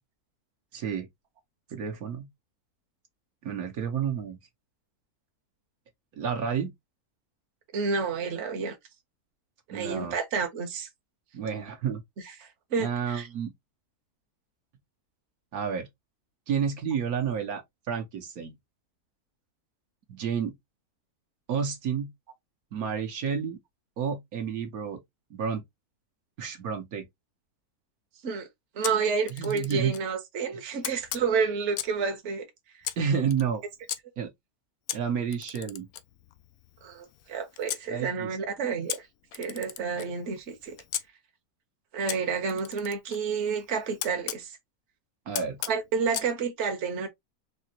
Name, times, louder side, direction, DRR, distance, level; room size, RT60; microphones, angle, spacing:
voice 1, 0.7-1.1 1.7-2.3 3.4-4.4 6.2-6.7 9.7-10.2 11.3-12.0 12.8-13.5 15.5-15.9 16.5-18.5 20.1-20.5 21.5-22.1 22.7-23.6 24.0-25.0 25.3-25.6 26.4-27.1 29.3-29.9 33.0-33.6 34.2-34.3 34.9-35.9 37.9-38.4 45.3-45.6, right 7 dB, 70° right, 1.4 m, -30 dB
voice 2, 7.7-8.8 9.7-10.9 12.4-13.3 28.2-28.5 28.7-32.5 36.8-39.1 39.3-40.8 41.9-44.6 45.7-47.1, right 5 dB, 55° right, 1.2 m, -30 dB
Camera, 28.8-30.1 30.8-32.1 32.8-34.0 34.9-37.8 38.9-41.0 42.1-44.4 45.3-46.3, left 12 dB, 75° left, 1.0 m, -38 dB
4.2 x 2.8 x 2.8 m
omnidirectional pair, 1.6 m